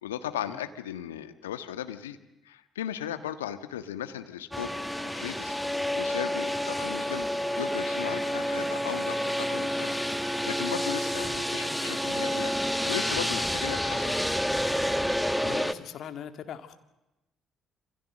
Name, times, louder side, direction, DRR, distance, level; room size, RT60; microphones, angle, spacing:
voice 1, 0.0-2.2 2.4-4.7 5.0-5.6 5.9-7.3 7.6-9.9 10.2-12.6 12.9-14.1, left 10 dB, 85° left, 9 dB, 1.5 m, -36 dB
sound 1, 4.5-15.7, equal, 5° left, 1.7 m, -29 dB
voice 2, 15.4-16.8, left 9 dB, 60° left, 8 dB, 2.5 m, -40 dB
27.5 x 27.0 x 6.6 m, 0.96 s
hypercardioid pair, 50°, 0 cm